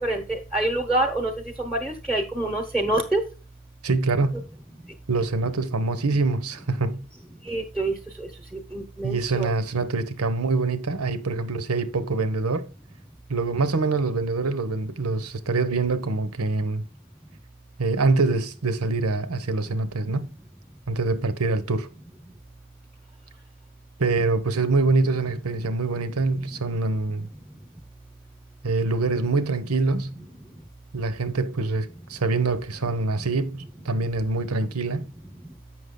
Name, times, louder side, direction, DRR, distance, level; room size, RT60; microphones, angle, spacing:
voice 1, 0.0-1.3 1.6-3.2 7.4-7.9 8.7-9.5, right 2 dB, ahead, 1.0 m, -26 dB
voice 2, 3.8-4.4 5.1-7.0 9.0-12.7 13.3-16.8 17.8-20.3 20.9-21.9 24.0-27.3 28.6-30.2 30.9-35.1, right 3 dB, 85° right, 1.0 m, -25 dB
8.0 x 6.1 x 3.8 m
head